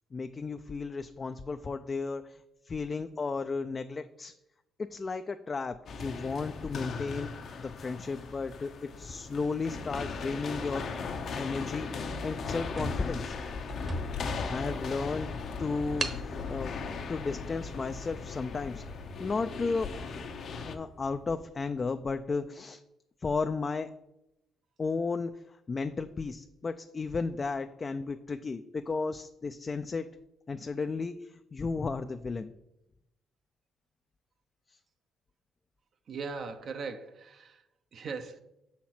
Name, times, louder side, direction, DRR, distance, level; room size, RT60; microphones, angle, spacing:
voice 1, 0.1-4.3 4.8-7.3 7.6-10.9 11.4-13.3 14.5-15.3 15.6-16.7 17.1-18.8 19.2-19.9 20.6-22.8 23.2-23.9 24.8-30.1 30.5-32.5 34.7-34.8, left 4 dB, 35° left, 8 dB, 0.3 m, -34 dB
sound 1, 5.9-20.8, left 4 dB, 60° left, 0.7 m, -38 dB
sound 2, 9.9-11.2 11.8-12.0 12.3-12.4 12.7-14.4 14.9-15.0 16.0-16.3, right 3 dB, 35° right, 1.0 m, -39 dB
Vehicle, 11.6-21.9, left 5 dB, 85° left, 1.0 m, -45 dB
voice 2, 36.1-38.4, right 4 dB, 60° right, 7 dB, 0.6 m, -39 dB
6.3 x 4.3 x 5.8 m, 0.87 s
cardioid pair, 90°, 0 cm